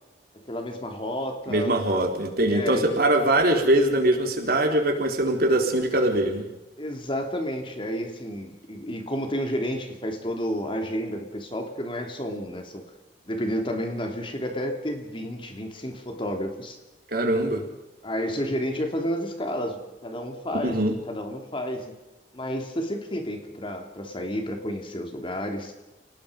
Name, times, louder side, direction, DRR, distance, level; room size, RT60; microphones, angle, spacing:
voice 1, 0.3-1.8 2.5-3.0 6.8-12.8 13.3-16.8 18.0-21.9 22.3-25.7, equal, 30° left, 4 dB, 3.2 m, -31 dB
voice 2, 1.5-6.5 17.1-17.6 20.6-21.0, right 1 dB, 55° right, 3 dB, 4.0 m, -22 dB
29.0 x 18.5 x 5.3 m, 1.0 s
head